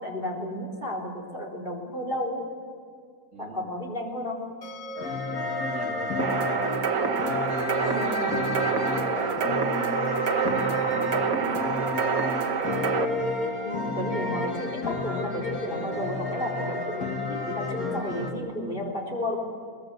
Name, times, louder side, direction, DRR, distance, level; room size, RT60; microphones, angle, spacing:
voice 1, 0.0-2.4 3.4-4.4 7.8-8.2 13.6-19.4, left 1 dB, 35° left, 0 dB, 4.2 m, -32 dB
voice 2, 3.3-3.7 5.3-6.4 7.0-9.0 10.2-12.0, right 3 dB, 60° right, 1 dB, 3.0 m, -43 dB
sound 1, 4.6-17.6, right 1 dB, 55° left, 3.9 m, -46 dB
sound 2, 5.0-18.3, left 2 dB, 85° left, 2.5 m, -30 dB
sound 3, 6.2-13.1, right 6 dB, 75° right, 1.5 m, -27 dB
22.0 x 21.5 x 8.1 m, 2.1 s
omnidirectional pair, 1.5 m